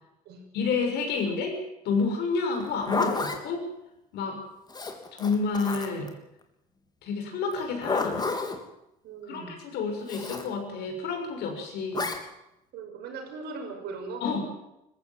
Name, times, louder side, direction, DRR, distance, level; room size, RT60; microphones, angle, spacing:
voice 1, 0.5-1.6 1.8-3.7 4.1-4.4 5.1-6.1 7.0-8.3 9.3-12.1 14.2-14.4, left 4 dB, 75° left, 3 dB, 6.7 m, -29 dB
Zipper (clothing), 2.6-3.4 4.7-6.1 7.5-8.6 10.1-10.5 11.9-12.2, left 3 dB, 25° left, 3.2 m, -30 dB
voice 2, 9.0-9.6 12.7-14.3, right 4 dB, 75° right, 4 dB, 6.1 m, -39 dB
20.5 x 15.5 x 9.3 m, 0.85 s
cardioid pair, 110°, 17 cm